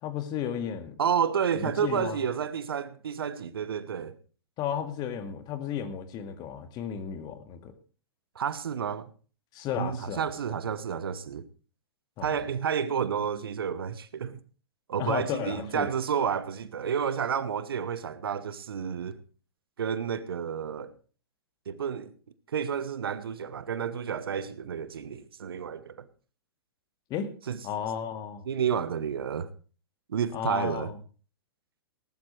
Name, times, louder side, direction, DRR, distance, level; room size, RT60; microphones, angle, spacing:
voice 1, 0.0-1.0 1.6-2.2 4.6-7.7 9.5-10.3 12.2-12.4 15.0-15.9 27.1-27.3 27.6-28.4 30.3-31.0, left 8 dB, 30° left, 2.0 m, -33 dB
voice 2, 1.0-4.2 8.3-9.1 9.8-11.4 12.2-14.4 14.9-19.2 19.8-20.9 21.7-22.1 22.5-26.1 27.5-27.6 28.4-29.5 30.1-30.9, right 7 dB, 70° right, 1.1 m, -30 dB
18.5 x 12.0 x 3.3 m
figure-of-eight pair, 115°, 13 cm